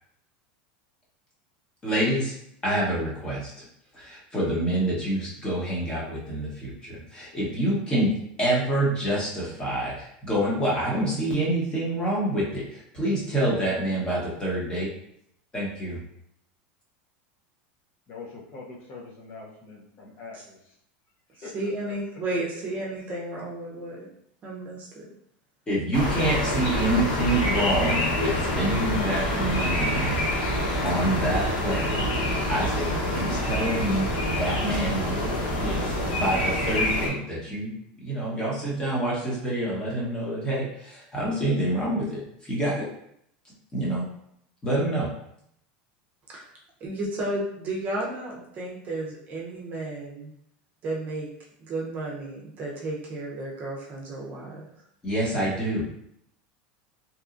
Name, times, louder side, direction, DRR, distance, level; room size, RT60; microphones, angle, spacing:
voice 1, 1.8-2.3 2.6-3.6 3.9-14.9 15.5-16.0 25.7-30.2 30.8-32.1 32.4-42.9 43.7-44.1 44.6-45.1 55.0-55.8, right 1 dB, 15° left, -6 dB, 1.0 m, -27 dB
voice 2, 18.1-20.6 21.4-21.5 21.9-22.0, left 4 dB, 45° left, -3 dB, 0.7 m, -43 dB
voice 3, 20.0-20.4 21.4-24.1 24.4-25.1 46.3-46.5 46.8-50.3 50.8-51.3 51.6-54.7, right 2 dB, 35° right, -3 dB, 0.7 m, -33 dB
sound 1, 25.9-37.1, equal, 85° left, 0.9 m, -26 dB
2.9 x 2.3 x 2.5 m, 0.72 s
supercardioid pair, 135°, 5 cm